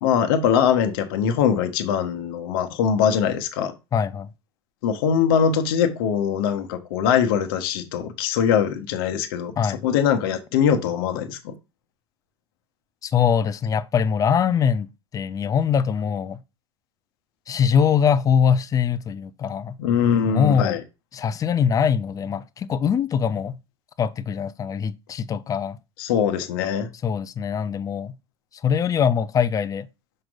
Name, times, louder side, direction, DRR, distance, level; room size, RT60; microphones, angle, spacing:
voice 1, 0.0-3.7 4.8-11.5 19.8-20.8 26.0-26.9, left 8 dB, 55° left, 1.1 m, -22 dB
voice 2, 3.9-4.3 9.6-9.8 13.0-14.9 15.1-16.4 17.5-19.8 20.3-20.8 21.1-23.6 24.0-25.8 27.0-28.1 28.6-29.9, left 7 dB, 25° left, 0.6 m, -22 dB
6.6 x 6.0 x 2.5 m
figure-of-eight pair, 75°, 14 cm